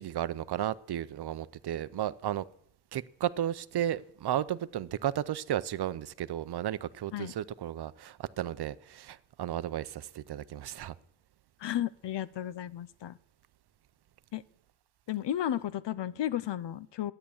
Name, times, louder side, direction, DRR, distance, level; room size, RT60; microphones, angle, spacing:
voice 1, 0.0-2.5 2.9-10.9, right 11 dB, 65° right, 0.6 m, -34 dB
voice 2, 11.6-13.2 14.3-14.4 15.1-17.1, left 11 dB, 75° left, 0.7 m, -33 dB
13.0 x 10.0 x 7.1 m
wide cardioid pair, 165°, 43 cm